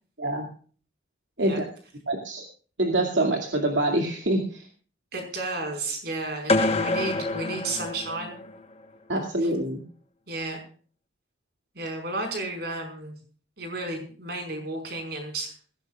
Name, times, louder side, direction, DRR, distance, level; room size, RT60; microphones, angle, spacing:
voice 1, 2.1-2.4 2.8-4.6 9.1-9.8, right 1 dB, 75° right, 1 dB, 2.4 m, -25 dB
voice 2, 5.1-8.4 9.4-9.5 10.3-10.6 11.7-13.1 13.6-15.5, right 2 dB, 55° right, 4 dB, 5.1 m, -32 dB
sound 1, 6.5-8.6, left 2 dB, 30° left, 1.2 m, -26 dB
21.0 x 16.5 x 2.4 m, 0.42 s
head